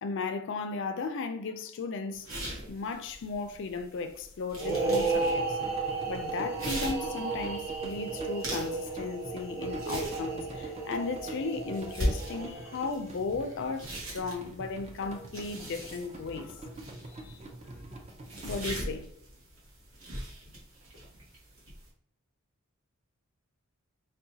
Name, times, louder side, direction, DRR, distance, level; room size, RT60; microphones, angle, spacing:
voice 1, 0.0-2.3 2.7-5.6 6.1-16.6 17.1-17.4 18.4-19.1, left 4 dB, 60° left, 0.4 m, -35 dB
sound 1, 2.1-21.9, equal, 65° right, 1.2 m, -41 dB
sound 2, 4.5-13.1, right 4 dB, 15° right, 1.0 m, -34 dB
sound 3, 4.7-18.6, right 1 dB, 30° right, 0.5 m, -45 dB
4.6 x 2.2 x 2.7 m
head